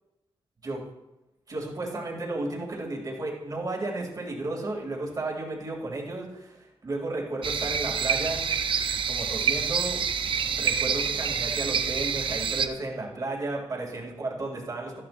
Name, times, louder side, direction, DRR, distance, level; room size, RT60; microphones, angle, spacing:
voice 1, 1.5-8.5 9.1-10.0 10.5-15.0, right 2 dB, 40° right, -2 dB, 2.7 m, -33 dB
sound 1, 7.4-12.7, right 6 dB, 60° right, 0.6 m, -27 dB
14.0 x 11.0 x 2.6 m, 0.97 s
wide cardioid pair, 155°, 10 cm